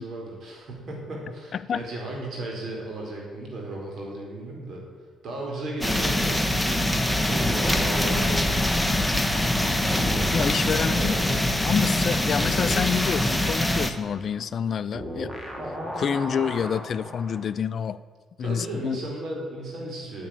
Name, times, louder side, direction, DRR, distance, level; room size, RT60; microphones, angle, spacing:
voice 1, 0.0-4.8 5.2-8.5 10.6-11.1 11.4-11.6 18.4-20.3, right 2 dB, 60° right, -1 dB, 4.9 m, -35 dB
voice 2, 1.5-1.8 10.3-15.3 15.9-18.0 18.4-19.0, left 7 dB, 55° left, 15 dB, 0.5 m, -28 dB
sound 1, 5.8-13.9, left 1 dB, 5° left, 1.2 m, -24 dB
sound 2, 7.4-9.6 9.9-17.5, equal, 15° right, 2.9 m, -37 dB
9.9 x 8.6 x 9.3 m, 1.5 s
cardioid pair, 90°, 0 cm